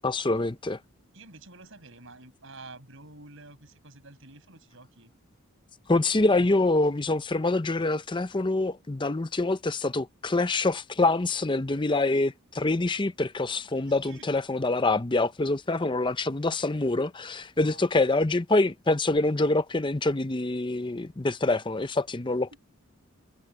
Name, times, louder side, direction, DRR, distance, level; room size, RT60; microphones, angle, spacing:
voice 1, 0.0-0.8 5.9-22.5, left 2 dB, 20° left, 0.6 m, -25 dB
voice 2, 1.1-5.1 13.6-14.3 17.5-18.0 22.5-22.6, right 2 dB, 60° right, 7.5 m, -49 dB
head